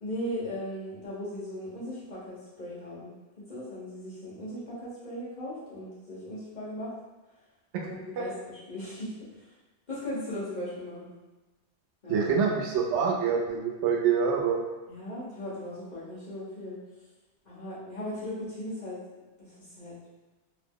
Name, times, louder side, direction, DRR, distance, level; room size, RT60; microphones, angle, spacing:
voice 1, 0.0-6.9 7.8-9.5 9.9-11.1 12.0-12.2 14.9-16.8 17.4-19.0 19.4-19.9, left 1 dB, 40° left, -9 dB, 1.1 m, -38 dB
voice 2, 12.1-14.6, right 6 dB, 80° right, -1 dB, 0.9 m, -26 dB
2.8 x 2.0 x 3.5 m, 1.2 s
omnidirectional pair, 1.2 m